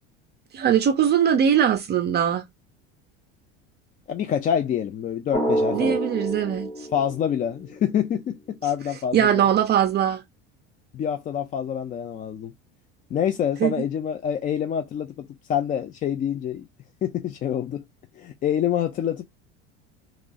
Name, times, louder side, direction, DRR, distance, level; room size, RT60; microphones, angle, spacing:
voice 1, 0.5-2.5 5.7-6.9 9.1-10.2 13.6-13.7, right 9 dB, 35° right, 0.5 m, -21 dB
voice 2, 4.1-6.0 6.9-9.5 10.9-12.5 13.1-16.7 17.0-17.8 18.1-19.2, left 9 dB, 30° left, 0.3 m, -26 dB
Drum, 5.3-7.9, right 1 dB, 10° left, 0.9 m, -28 dB
3.0 x 2.3 x 3.9 m
supercardioid pair, 120°, 29 cm